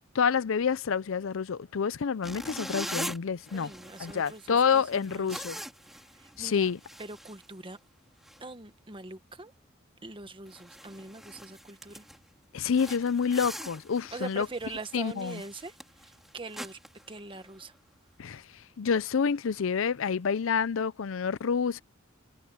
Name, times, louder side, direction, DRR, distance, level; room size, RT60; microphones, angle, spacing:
voice 1, 0.1-3.7 4.0-5.6 6.4-6.8 12.5-14.5 14.9-15.4 18.2-21.8, left 6 dB, 70° left, 0.5 m, -28 dB
sound 1, 2.2-7.9 8.2-8.4 8.9-9.2 9.5-9.6 10.1-10.2 10.5-12.3 12.7-17.8, equal, ahead, 2.8 m, -43 dB
voice 2, 3.5-5.4 6.2-6.7 7.0-7.8 8.4-9.5 10.0-12.0 14.1-15.7 16.0-16.8 17.1-17.7, right 3 dB, 25° right, 1.4 m, -42 dB
head